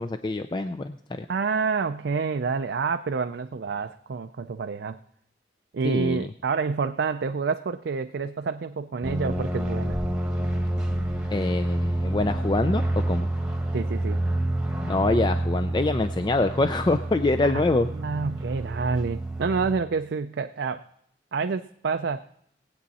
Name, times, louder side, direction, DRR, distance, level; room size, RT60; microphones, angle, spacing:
voice 1, 0.0-1.3 5.8-6.3 11.3-13.3 14.9-17.9, left 2 dB, 25° left, 9 dB, 0.4 m, -25 dB
voice 2, 1.3-5.0 5.7-10.0 13.7-14.2 17.4-17.6 17.9-20.9 21.3-22.2, right 5 dB, 70° right, 7 dB, 0.4 m, -28 dB
sound 1, 9.0-19.7, right 1 dB, 5° right, 1.2 m, -28 dB
19.5 x 8.5 x 4.1 m, 0.73 s
head